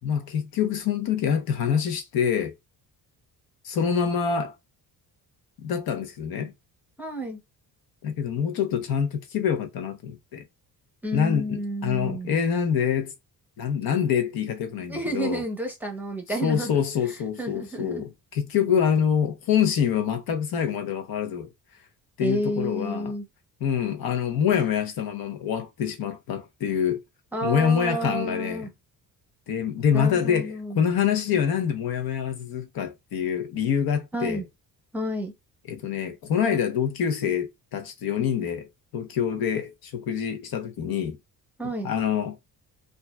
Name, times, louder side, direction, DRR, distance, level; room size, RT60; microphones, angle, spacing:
voice 1, 0.0-2.5 3.6-4.5 5.6-6.5 8.0-10.4 11.1-13.1 13.6-15.4 16.4-21.5 22.2-23.1 23.6-27.0 27.4-28.7 29.5-34.4 35.7-38.7 38.9-41.2 41.8-42.4, left 7 dB, 65° left, 0.9 m, -26 dB
voice 2, 7.0-7.4 11.0-12.4 14.9-16.7 17.1-18.0 22.2-23.2 27.3-28.7 29.9-30.8 34.1-34.4 34.9-35.3 41.6-41.9, right 1 dB, 5° right, 0.7 m, -30 dB
5.1 x 2.3 x 2.2 m
cardioid pair, 180°, 39 cm